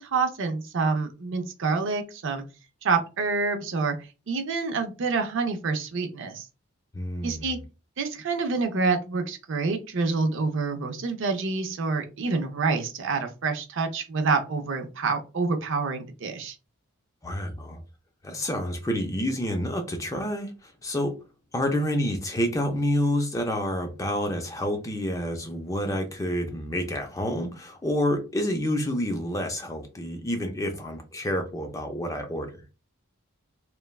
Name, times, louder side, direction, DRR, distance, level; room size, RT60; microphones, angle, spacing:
voice 1, 0.0-2.4 2.8-4.0 4.3-6.5 7.2-7.6 8.0-16.6, right 4 dB, 60° right, 0.5 m, -27 dB
voice 2, 6.9-7.6 17.2-17.8 18.2-21.2 21.5-32.5, equal, 15° left, 0.4 m, -28 dB
3.1 x 2.2 x 2.3 m
head